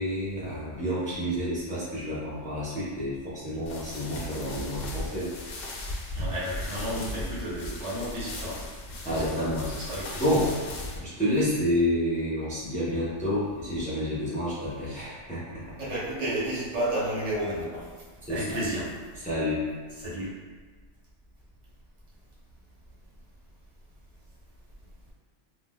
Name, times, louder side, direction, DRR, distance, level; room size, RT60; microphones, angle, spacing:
voice 1, 0.0-5.3 9.0-9.7 10.2-10.5 11.0-15.6 18.3-18.6 19.2-19.7, equal, 10° left, -9 dB, 0.5 m, -29 dB
sound 1, 3.7-11.0, left 1 dB, 65° left, 0.7 m, -37 dB
voice 2, 6.1-8.6 9.1-9.2 9.7-10.3 15.8-17.9 18.3-18.9 20.0-20.3, right 1 dB, 90° right, -8 dB, 1.3 m, -31 dB
3.4 x 2.4 x 2.2 m, 1.5 s
omnidirectional pair, 1.2 m